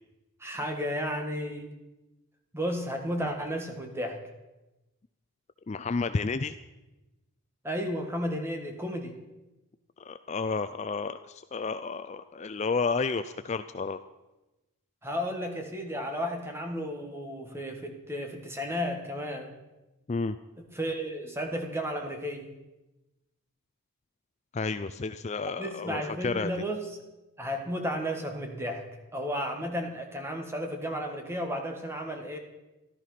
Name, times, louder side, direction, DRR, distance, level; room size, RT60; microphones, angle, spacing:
voice 1, 0.4-1.7 2.5-4.2 7.6-9.2 15.0-19.5 20.6-22.5 25.6-27.0 27.4-28.8 29.1-32.4, equal, 10° right, 3 dB, 1.6 m, -33 dB
voice 2, 5.7-6.5 10.0-14.0 20.1-20.4 24.5-26.5, left 4 dB, 30° left, 10 dB, 0.4 m, -31 dB
14.0 x 12.5 x 5.8 m, 1.0 s
head